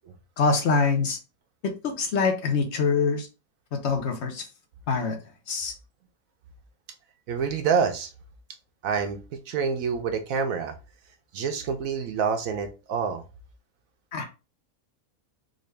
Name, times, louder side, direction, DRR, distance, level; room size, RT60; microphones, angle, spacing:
voice 1, 0.4-1.2 1.6-3.3 3.7-4.4 4.9-5.2 5.5-5.7 14.1-14.3, left 4 dB, 55° left, 6 dB, 0.9 m, -24 dB
voice 2, 7.3-8.1 8.8-10.7 11.3-13.2, right 6 dB, 75° right, 6 dB, 1.0 m, -27 dB
3.8 x 2.5 x 3.2 m, 0.29 s
omnidirectional pair, 1.5 m